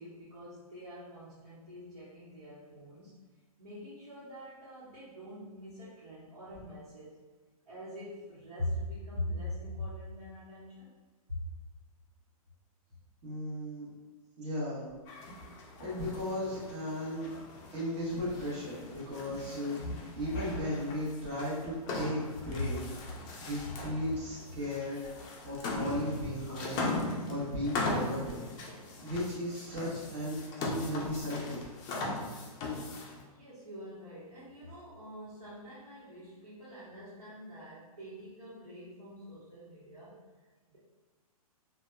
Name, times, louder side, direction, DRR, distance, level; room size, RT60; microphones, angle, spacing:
voice 1, 0.0-7.2 7.7-10.9 11.3-11.5 22.6-22.7 33.3-40.8, left 1 dB, 80° right, -10 dB, 1.1 m, -43 dB
voice 2, 13.2-13.9 14.4-14.9 15.8-17.3 17.7-22.2 22.4-22.8 23.4-25.0 25.4-26.9 27.2-28.4 29.0-31.6, left 1 dB, 50° right, -8 dB, 1.1 m, -36 dB
sound 1, 15.1-33.2, left 2 dB, 25° left, 0.4 m, -39 dB
2.6 x 2.2 x 2.2 m, 1.4 s
hypercardioid pair, 135°, 19 cm